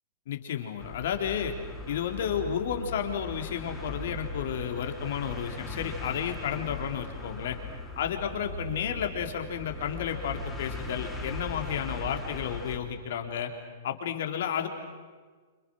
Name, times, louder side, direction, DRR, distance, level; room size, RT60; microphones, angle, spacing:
voice 1, 0.3-1.5 1.9-7.6 8.0-13.5 13.8-14.7, left 8 dB, 60° left, 4 dB, 3.5 m, -32 dB
sound 1, 0.8-12.8, left 2 dB, 5° left, 4.3 m, -39 dB
29.5 x 27.0 x 6.4 m, 1.4 s
hypercardioid pair, 110°, 0 cm